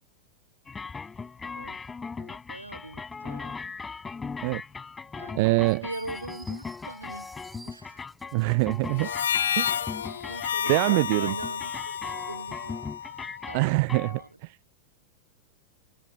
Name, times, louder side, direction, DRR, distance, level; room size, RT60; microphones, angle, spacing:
sound 1, 0.7-14.3, left 4 dB, 15° left, 5.9 m, -39 dB
voice 1, 2.2-3.5 5.2-7.3 7.6-8.1 10.1-12.8 13.5-13.7 14.1-14.3, right 2 dB, 85° right, 1.4 m, -41 dB
voice 2, 5.3-5.8 8.3-9.1 9.6-9.8 10.7-11.3 13.5-14.2, right 28 dB, 45° right, 0.4 m, -24 dB
sound 2, 5.6-9.6, right 3 dB, 10° right, 3.2 m, -54 dB
Harmonica, 9.0-13.6, left 9 dB, 65° left, 1.8 m, -31 dB
figure-of-eight pair, 90°, 0 cm